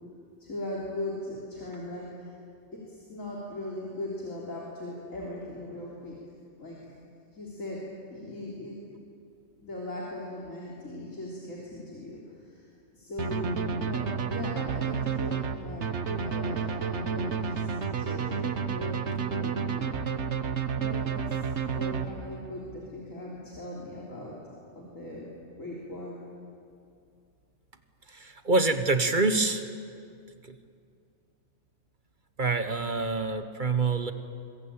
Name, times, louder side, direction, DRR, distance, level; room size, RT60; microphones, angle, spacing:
voice 1, 0.4-2.3 2.7-6.2 6.6-6.8 7.3-7.8 8.1-8.8 9.6-12.7 12.9-20.1 20.5-21.5 21.7-24.4 24.8-25.3 25.6-26.2, left 1 dB, 80° left, -5 dB, 3.9 m, -39 dB
sound 1, 13.2-22.5, right 6 dB, 60° right, 1.4 m, -30 dB
voice 2, 28.1-29.7 30.4-30.5 32.4-34.1, right 3 dB, 40° right, 9 dB, 1.2 m, -26 dB
25.0 x 22.5 x 8.8 m, 2.4 s
omnidirectional pair, 1.3 m